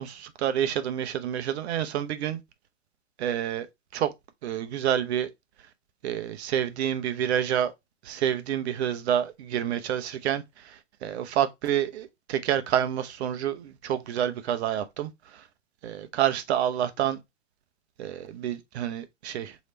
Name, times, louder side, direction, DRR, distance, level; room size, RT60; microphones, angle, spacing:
voice 1, 0.0-2.4 3.2-3.7 3.9-4.1 4.4-5.3 6.0-7.7 8.0-15.4 15.8-17.2 18.0-19.6, right 10 dB, 60° right, 0.7 m, -28 dB
3.1 x 2.9 x 4.2 m
hypercardioid pair, 125°, 37 cm